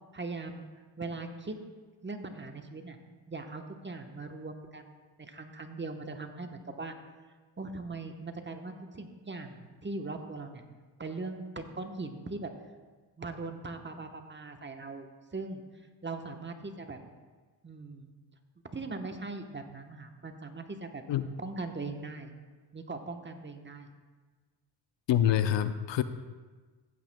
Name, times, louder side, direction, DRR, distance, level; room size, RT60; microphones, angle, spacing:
voice 1, 0.1-0.7 1.0-1.6 2.0-3.0 3.3-4.9 5.2-6.9 7.6-10.6 11.0-12.5 13.2-15.6 16.0-17.0 17.6-18.1 18.7-21.0 21.4-22.3 22.7-23.9, right 3 dB, 25° right, 5 dB, 1.0 m, -40 dB
voice 2, 25.1-26.0, left 11 dB, 65° left, 11 dB, 0.6 m, -26 dB
15.5 x 9.0 x 2.2 m, 1.4 s
cardioid pair, 75°, 48 cm